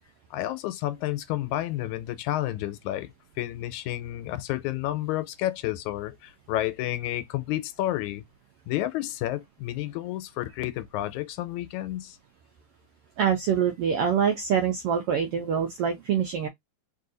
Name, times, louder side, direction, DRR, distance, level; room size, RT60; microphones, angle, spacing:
voice 1, 0.3-3.1 3.4-8.2 8.7-12.2, left 14 dB, 85° left, 2.0 m, -30 dB
voice 2, 13.2-16.5, right 7 dB, 80° right, 1.3 m, -25 dB
4.4 x 2.7 x 3.8 m
omnidirectional pair, 3.4 m